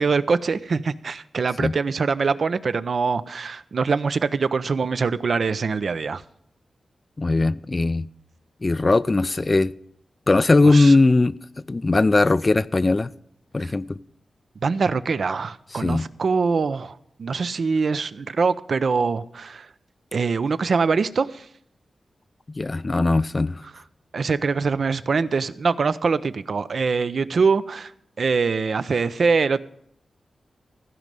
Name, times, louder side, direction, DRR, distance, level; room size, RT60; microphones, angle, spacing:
voice 1, 0.0-6.2 10.6-11.0 13.6-13.7 14.6-19.7 20.1-21.5 24.1-27.9 28.2-29.6, right 5 dB, 60° right, 0.6 m, -23 dB
voice 2, 7.2-8.1 8.6-9.7 10.3-11.3 11.7-13.1 13.5-14.0 15.8-16.1 22.5-23.6, left 3 dB, 30° left, 0.4 m, -19 dB
15.5 x 5.3 x 7.6 m
wide cardioid pair, 95°, 0 cm